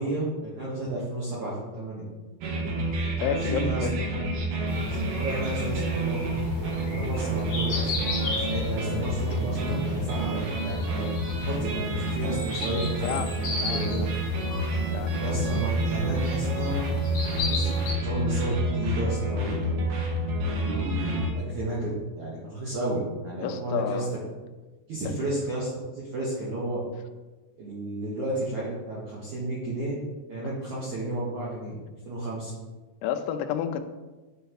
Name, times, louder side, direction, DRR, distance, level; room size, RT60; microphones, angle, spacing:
voice 1, 0.0-2.0 3.4-3.9 4.9-6.2 6.9-11.0 11.5-13.2 13.7-14.0 15.2-16.8 17.3-19.9 20.5-24.0 24.9-26.8 27.6-30.0 30.3-31.8 32.1-32.5, right 2 dB, 75° right, -6 dB, 1.7 m, -32 dB
sound 1, 2.4-21.3, right 1 dB, 90° right, 1.8 m, -28 dB
voice 2, 3.2-3.9 10.0-10.1 13.0-13.3 13.6-14.1 14.9-15.2 23.4-24.1 33.0-33.8, left 9 dB, 90° left, 8 dB, 3.0 m, -30 dB
sound 2, 4.7-17.9, left 3 dB, 65° left, 1.7 m, -36 dB
9.1 x 5.6 x 3.0 m, 1.2 s
omnidirectional pair, 5.3 m